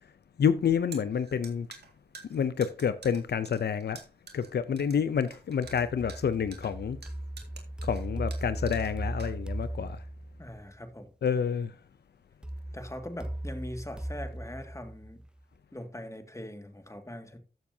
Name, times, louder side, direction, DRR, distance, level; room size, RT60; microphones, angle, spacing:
voice 1, 0.4-1.7 2.3-4.0 4.3-7.0 7.8-10.0 11.2-11.7, left 7 dB, 80° left, 0.6 m, -28 dB
sound 1, 0.6-9.8, right 5 dB, 85° right, 2.2 m, -50 dB
sound 2, 5.6-10.6 12.4-15.4, right 1 dB, 5° right, 0.6 m, -38 dB
voice 2, 10.4-11.1 12.7-15.2 15.7-17.4, left 1 dB, 20° left, 2.1 m, -41 dB
13.5 x 7.2 x 2.8 m
cardioid pair, 55°, 17 cm